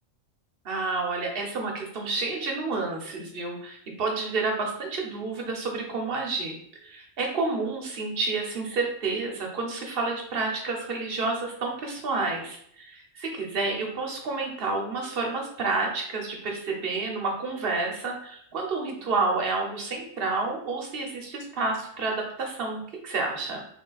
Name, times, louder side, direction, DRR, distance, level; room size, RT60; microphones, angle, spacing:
voice 1, 0.6-6.6 6.8-23.6, right 3 dB, 50° right, 1 dB, 0.9 m, -30 dB
3.2 x 2.7 x 3.9 m, 0.66 s
omnidirectional pair, 1.3 m